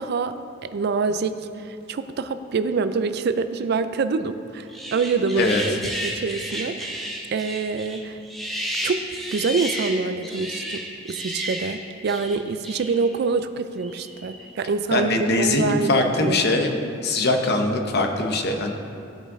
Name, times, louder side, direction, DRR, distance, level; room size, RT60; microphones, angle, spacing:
voice 1, 0.0-8.2 8.8-16.4, right 4 dB, 55° right, 11 dB, 0.4 m, -26 dB
sound 1, 4.7-13.2 13.8-14.5, equal, ahead, 0.8 m, -32 dB
voice 2, 14.9-16.7 17.0-18.7, left 2 dB, 55° left, 4 dB, 0.8 m, -22 dB
15.0 x 5.1 x 3.6 m, 2.6 s
head